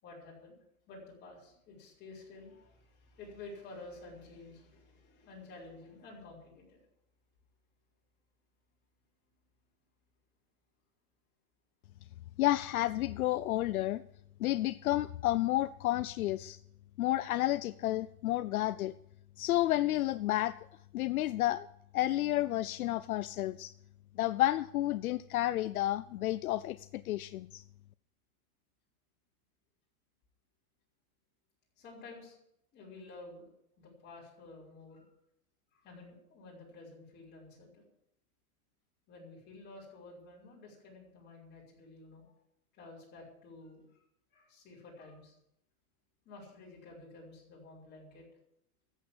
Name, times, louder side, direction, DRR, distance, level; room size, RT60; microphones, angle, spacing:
voice 1, 0.0-6.8 31.8-32.4 32.7-33.5 33.8-35.1 35.7-37.8 39.1-42.2 42.7-44.0 44.3-45.3 46.2-48.3, left 3 dB, 20° left, -4 dB, 5.8 m, -51 dB
voice 2, 12.4-14.0 14.4-16.6 17.0-18.9 19.4-20.6 20.9-21.7 21.9-23.7 24.2-27.6, left 15 dB, 70° left, 14 dB, 0.6 m, -31 dB
13.5 x 8.3 x 8.5 m, 0.76 s
supercardioid pair, 160°, 45 cm